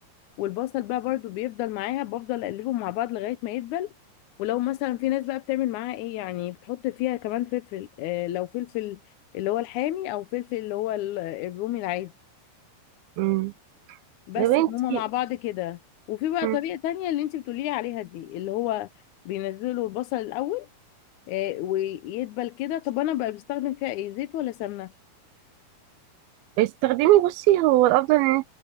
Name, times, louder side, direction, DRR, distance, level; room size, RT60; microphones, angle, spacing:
voice 1, 0.4-3.9 4.4-9.0 9.3-12.1 14.3-15.8 16.1-18.9 19.3-20.7 21.3-24.9, left 14 dB, 80° left, 1.8 m, -29 dB
voice 2, 13.2-13.5 14.4-15.0 16.4-16.6 26.6-28.4, right 15 dB, 90° right, 2.5 m, -20 dB
omnidirectional pair, 4.3 m